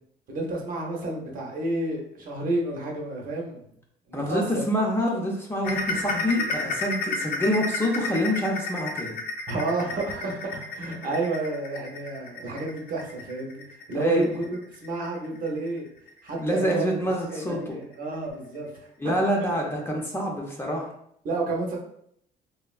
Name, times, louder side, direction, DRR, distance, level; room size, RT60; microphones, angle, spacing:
voice 1, 0.3-3.7 4.1-4.6 9.5-14.4 14.7-15.9 16.2-16.9 17.2-18.7 21.2-21.8, right 2 dB, 55° right, -1 dB, 0.7 m, -30 dB
voice 2, 4.1-9.2 14.0-14.3 16.4-17.7 19.0-20.9, equal, 15° left, -1 dB, 0.6 m, -26 dB
sound 1, 5.6-16.9 17.3-17.5 17.9-18.0 18.5-18.6, left 3 dB, 65° left, 0.6 m, -32 dB
3.3 x 2.1 x 2.3 m, 0.71 s
cardioid pair, 110°, 17 cm